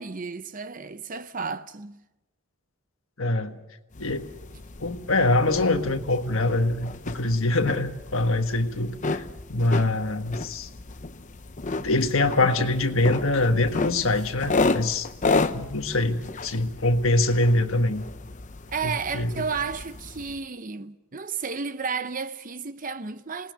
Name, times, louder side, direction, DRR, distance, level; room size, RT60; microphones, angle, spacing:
voice 1, 0.0-2.0 18.7-23.5, right 5 dB, 35° right, 0.7 m, -32 dB
voice 2, 3.2-3.6 4.0-4.3 4.8-9.2 9.5-10.7 11.8-15.1 15.5-18.0 18.8-19.3, left 2 dB, 65° left, 1.6 m, -24 dB
sound 1, 3.9-20.4, left 3 dB, 35° left, 0.7 m, -32 dB
27.0 x 19.0 x 6.9 m
head